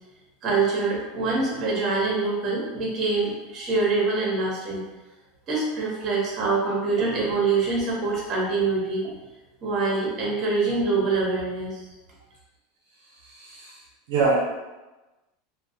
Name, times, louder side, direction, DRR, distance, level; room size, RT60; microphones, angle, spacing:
voice 1, 0.4-4.8 5.5-9.2 9.6-11.8, right 3 dB, 35° right, -4 dB, 0.9 m, -25 dB
voice 2, 13.1-14.3, right 4 dB, 75° right, -3 dB, 0.5 m, -26 dB
2.3 x 2.1 x 2.6 m, 1.1 s
supercardioid pair, 130°, 0 cm